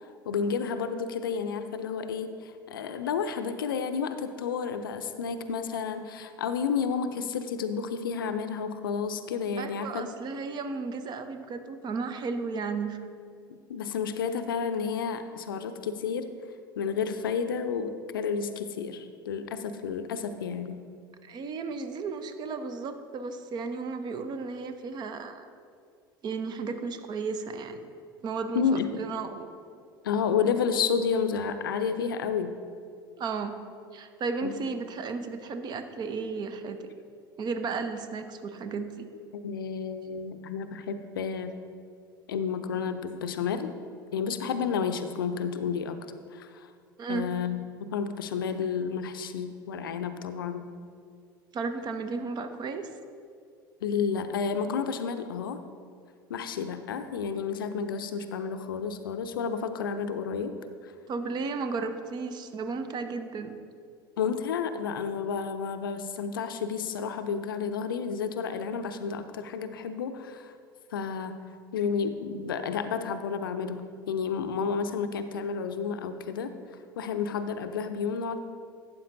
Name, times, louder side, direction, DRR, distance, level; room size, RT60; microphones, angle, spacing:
voice 1, 0.3-10.1 13.5-16.3 16.8-20.8 28.5-29.0 30.0-32.5 34.4-34.6 39.3-41.5 42.3-43.7 44.1-46.0 46.3-46.7 47.1-50.7 53.8-55.6 56.3-60.5 60.8-60.9 64.2-70.5 70.9-71.4 71.7-76.5 77.0-78.4, left 6 dB, 75° left, 10 dB, 0.5 m, -31 dB
voice 2, 9.6-13.0 21.2-25.4 26.2-27.9 28.2-29.5 33.2-33.6 33.9-36.9 37.4-39.1 47.0-47.3 51.5-52.9 61.1-63.6, right 4 dB, 40° right, 9 dB, 0.8 m, -34 dB
12.5 x 8.4 x 2.7 m, 2.2 s
figure-of-eight pair, 70°, 12 cm